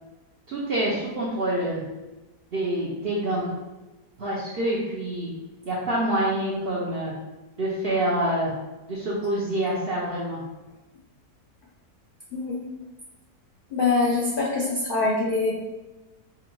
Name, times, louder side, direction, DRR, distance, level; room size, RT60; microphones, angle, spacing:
voice 1, 0.5-1.8 2.5-3.5 4.2-5.3 5.7-7.1 7.6-8.5 8.9-10.4, right 1 dB, 60° right, -5 dB, 0.6 m, -26 dB
voice 2, 13.7-15.5, left 3 dB, 70° left, -4 dB, 0.5 m, -24 dB
4.8 x 2.2 x 3.0 m, 1.1 s
omnidirectional pair, 1.7 m